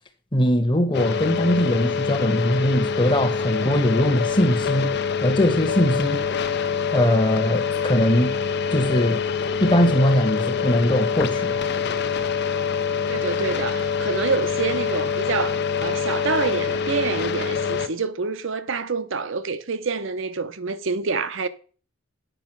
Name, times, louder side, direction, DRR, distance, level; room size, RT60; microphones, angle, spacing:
voice 1, 0.3-4.9 5.2-6.2 6.9-8.3 8.7-9.2 9.6-11.7, equal, 25° left, 1.1 m, -21 dB
sound 1, 0.9-17.9, left 6 dB, 55° left, 0.6 m, -25 dB
voice 2, 13.1-21.5, right 4 dB, 65° right, 0.8 m, -27 dB
9.3 x 5.1 x 6.1 m
head